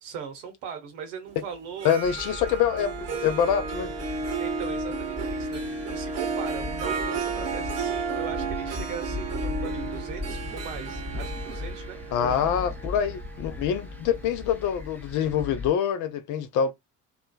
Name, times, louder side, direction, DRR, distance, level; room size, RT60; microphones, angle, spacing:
voice 1, 0.0-1.9 4.4-12.6, right 7 dB, 65° right, 1.0 m, -39 dB
Harp, 1.7-14.6, right 4 dB, 40° right, 0.9 m, -33 dB
voice 2, 1.8-3.0 3.2-3.9 12.1-16.7, left 8 dB, 50° left, 0.6 m, -25 dB
sound 1, 2.0-15.7, left 3 dB, 5° left, 0.7 m, -38 dB
2.9 x 2.3 x 2.2 m
figure-of-eight pair, 55°, 39 cm